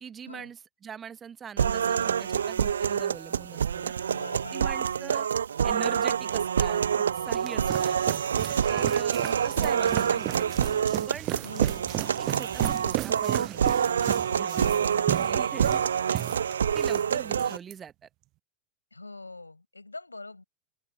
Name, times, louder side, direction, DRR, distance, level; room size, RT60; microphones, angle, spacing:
voice 1, 0.0-3.9 4.5-5.3 5.6-8.0 8.7-10.6 11.1-11.8 12.2-13.9 14.4-15.8 16.1-16.2 16.7-18.1, right 7 dB, 20° right, 1.3 m, -42 dB
sound 1, 1.6-17.6, right 8 dB, 70° right, 1.0 m, -27 dB
voice 2, 4.1-5.2 7.6-7.8 8.6-9.0 11.4-11.9 14.5-15.0 15.7-15.9 18.9-20.4, left 2 dB, 80° left, 5.0 m, -44 dB
sound 2, 7.1-17.0 17.3-17.7, right 18 dB, 40° right, 0.3 m, -35 dB
open air
figure-of-eight pair, 90°, 0 cm